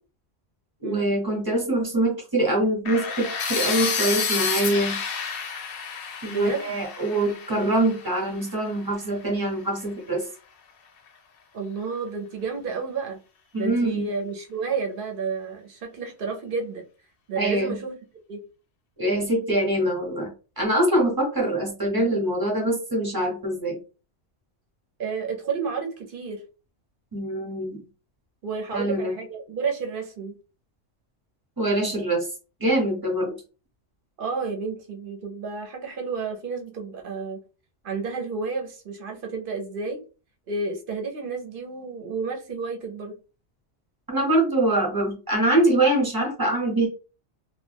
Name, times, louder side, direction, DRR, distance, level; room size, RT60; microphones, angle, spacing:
voice 1, 0.8-5.0 6.2-10.2 13.5-14.1 17.4-17.8 19.0-20.3 20.6-23.8 27.1-27.8 28.7-29.1 31.6-32.3 32.6-33.3 44.1-46.9, right 1 dB, 20° right, -1 dB, 0.8 m, -24 dB
sound 1, 2.8-8.8, left 5 dB, 60° left, 0.7 m, -29 dB
voice 2, 6.3-6.8 11.5-13.2 13.6-16.8 17.3-18.0 18.3-18.4 25.0-26.4 28.4-30.3 33.2-33.3 34.2-37.4 37.8-40.1 40.5-43.2, right 4 dB, 55° right, 3 dB, 0.7 m, -31 dB
2.2 x 2.1 x 3.3 m, 0.34 s
omnidirectional pair, 1.2 m